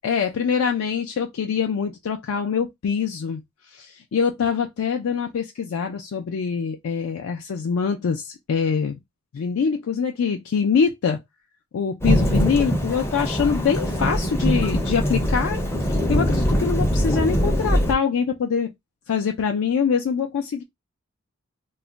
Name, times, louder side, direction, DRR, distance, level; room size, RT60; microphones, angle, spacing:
voice 1, 0.0-3.4 3.7-9.0 9.3-11.2 11.7-18.7 19.1-20.6, left 6 dB, 75° left, 0.4 m, -24 dB
Thunderstorm / Rain, 12.0-17.9, equal, 10° left, 0.4 m, -22 dB
2.3 x 2.1 x 3.8 m
head